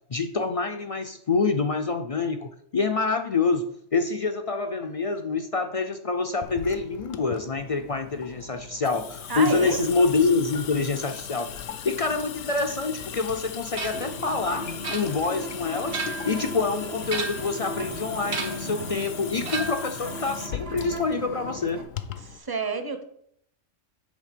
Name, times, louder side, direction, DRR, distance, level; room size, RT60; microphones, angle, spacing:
voice 1, 0.1-3.6 3.9-11.5 11.8-16.0 16.2-21.8, left 4 dB, 65° left, 5 dB, 0.3 m, -26 dB
Water tap faucet / Sink (filling or washing) / Drip, 6.4-22.4, left 8 dB, 85° left, 1.0 m, -38 dB
voice 2, 9.3-9.8 22.2-23.0, right 4 dB, 25° right, 8 dB, 0.6 m, -30 dB
sound 1, 13.8-14.1 14.8-15.4 15.8-16.4 17.0-17.6 18.3-18.7 19.4-19.9, right 4 dB, 80° right, 1.7 m, -33 dB
sound 2, 13.9-21.8, right 1 dB, 55° right, 1.1 m, -38 dB
8.5 x 3.6 x 6.7 m, 0.69 s
omnidirectional pair, 1.3 m